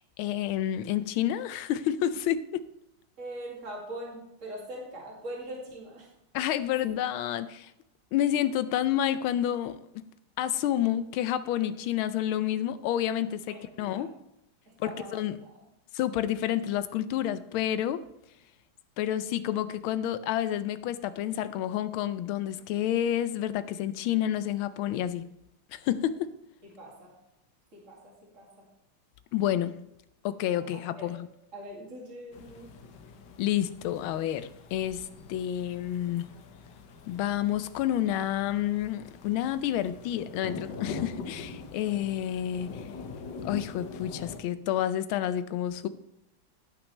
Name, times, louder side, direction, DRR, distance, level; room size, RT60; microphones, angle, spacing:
voice 1, 0.2-2.6 6.3-7.7 8.1-10.1 10.4-14.1 14.8-15.3 15.9-18.0 19.0-25.2 25.7-26.3 29.3-29.7 30.2-31.3 33.4-36.3 37.1-42.8 43.4-45.9, left 11 dB, 80° left, 14 dB, 1.4 m, -29 dB
voice 2, 3.2-6.1 13.5-14.1 14.7-15.2 26.7-27.1 27.7-28.5 30.5-31.1 31.5-32.8, right 1 dB, 35° right, -4 dB, 2.6 m, -42 dB
sound 1, 32.3-44.4, left 4 dB, 60° left, 1.4 m, -43 dB
16.5 x 5.9 x 3.2 m, 0.84 s
omnidirectional pair, 2.3 m